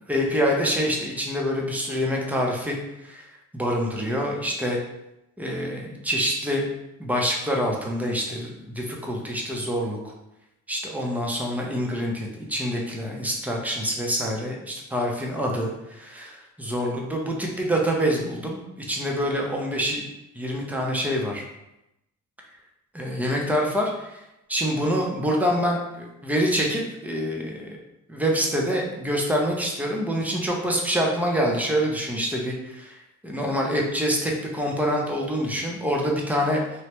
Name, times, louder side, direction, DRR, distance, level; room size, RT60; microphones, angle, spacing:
voice 1, 0.1-2.7 3.0-3.2 3.5-4.8 5.4-6.7 7.0-10.0 10.7-18.6 18.9-20.1 20.3-21.4 22.9-24.2 24.5-27.8 28.1-36.6, equal, 5° right, -1 dB, 0.6 m, -26 dB
3.0 x 2.1 x 2.9 m, 0.89 s
cardioid pair, 90°, 30 cm